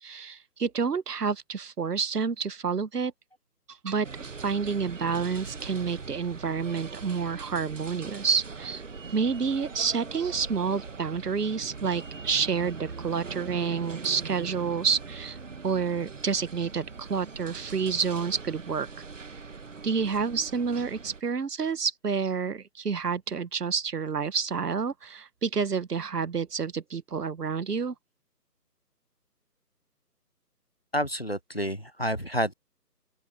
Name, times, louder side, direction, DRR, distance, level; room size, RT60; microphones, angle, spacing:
voice 1, 0.0-3.1 3.8-8.8 9.1-15.4 15.6-19.0 19.8-27.9, right 5 dB, 70° right, 1.3 m, -29 dB
sound 1, 4.0-21.2, right 4 dB, 50° right, 1.4 m, -41 dB
voice 2, 30.9-32.5, equal, 40° left, 0.5 m, -29 dB
open air
figure-of-eight pair, 175°, 49 cm